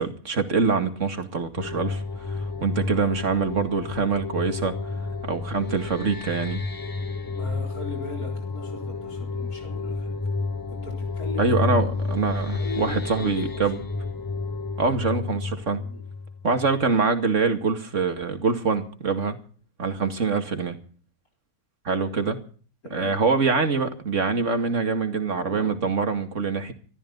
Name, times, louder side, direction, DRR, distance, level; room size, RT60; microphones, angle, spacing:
voice 1, 0.0-2.0 2.3-4.7 5.2-6.6 11.4-13.8 14.8-15.8 16.4-19.4 19.8-20.8 21.8-22.4 22.9-26.7, right 4 dB, 55° right, 7 dB, 2.6 m, -24 dB
sound 1, 1.6-17.0, left 3 dB, 25° left, 0.4 m, -31 dB
voice 2, 7.3-10.1 10.7-11.5 12.2-13.7 15.7-16.0 22.8-23.2, left 2 dB, 75° left, 2 dB, 4.6 m, -40 dB
24.5 x 14.0 x 4.0 m, 0.42 s
omnidirectional pair, 1.6 m